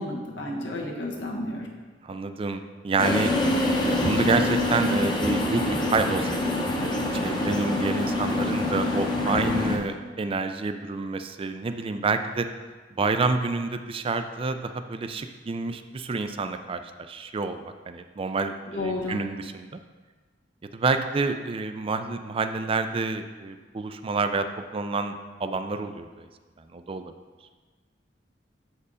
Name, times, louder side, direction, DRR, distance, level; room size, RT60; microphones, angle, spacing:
voice 1, 0.0-1.7 9.3-9.7 18.7-19.2, left 2 dB, 85° left, -1 dB, 1.3 m, -32 dB
voice 2, 2.0-3.3 3.8-5.6 5.9-6.5 6.8-12.5 13.0-16.8 17.1-19.7 20.7-24.5 24.7-25.1 25.4-26.3 26.7-27.1, right 3 dB, 30° right, 8 dB, 0.4 m, -28 dB
sound 1, 3.0-9.8, left 1 dB, 25° left, 0.8 m, -25 dB
6.9 x 4.5 x 4.9 m, 1.4 s
head